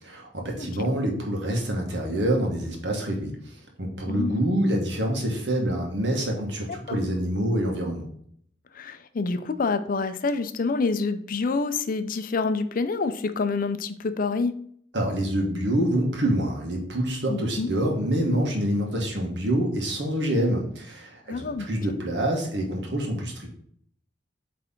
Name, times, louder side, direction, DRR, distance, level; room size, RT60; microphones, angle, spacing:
voice 1, 0.0-8.1 14.9-23.5, right 1 dB, 75° right, 0 dB, 1.5 m, -26 dB
voice 2, 4.1-4.4 6.9-7.0 8.8-14.5 17.3-17.7 21.3-21.7, left 4 dB, 50° left, 10 dB, 0.5 m, -27 dB
8.0 x 3.4 x 3.7 m, 0.64 s
head